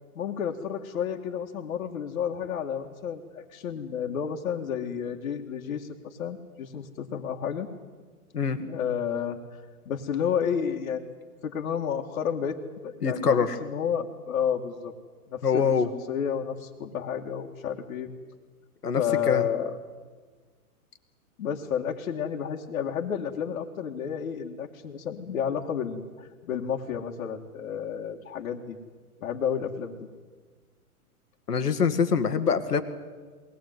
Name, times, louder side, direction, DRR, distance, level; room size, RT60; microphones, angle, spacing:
voice 1, 0.2-7.7 8.6-9.4 9.9-11.2 11.4-12.6 12.8-14.9 15.3-15.7 16.1-18.1 19.0-19.8 21.4-28.8 29.2-30.1, left 8 dB, 65° left, -2 dB, 2.1 m, -31 dB
voice 2, 13.0-13.5 15.4-15.9 18.8-19.5 31.5-32.8, left 6 dB, 90° left, 9 dB, 2.0 m, -24 dB
22.0 x 18.5 x 9.3 m, 1.5 s
hypercardioid pair, 135°, 45 cm